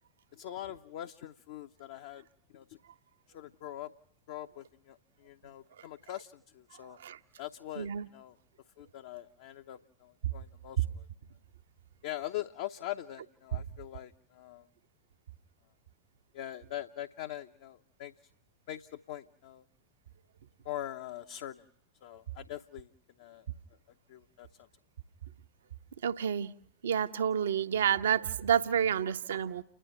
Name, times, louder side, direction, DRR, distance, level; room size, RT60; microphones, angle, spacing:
voice 1, 0.3-2.2 2.5-2.8 3.3-3.9 4.3-7.0 7.4-8.4 8.8-11.0 12.0-14.6 16.3-18.1 18.7-19.6 20.6-21.7 22.0-22.9 23.2-23.5 24.1-24.5, left 13 dB, 55° left, 0.8 m, -42 dB
voice 2, 7.8-8.1 13.5-13.6 26.0-26.5 26.8-29.6, right 8 dB, 65° right, 0.9 m, -29 dB
29.5 x 11.0 x 9.3 m
figure-of-eight pair, 90°, 0 cm